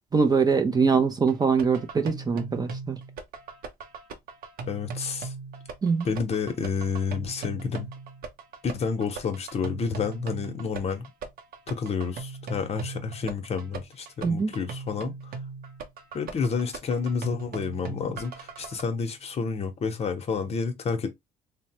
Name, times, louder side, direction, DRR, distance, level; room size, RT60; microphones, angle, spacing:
voice 1, 0.1-3.0 5.8-6.1 14.2-14.5, right 5 dB, 25° right, 0.4 m, -23 dB
sound 1, 1.3-18.8, right 4 dB, 60° right, 0.7 m, -39 dB
voice 2, 4.7-5.3 6.0-7.9 8.6-11.1 11.7-15.1 16.1-21.1, left 5 dB, 40° left, 0.8 m, -29 dB
3.1 x 2.0 x 2.9 m
cardioid pair, 110°, 17 cm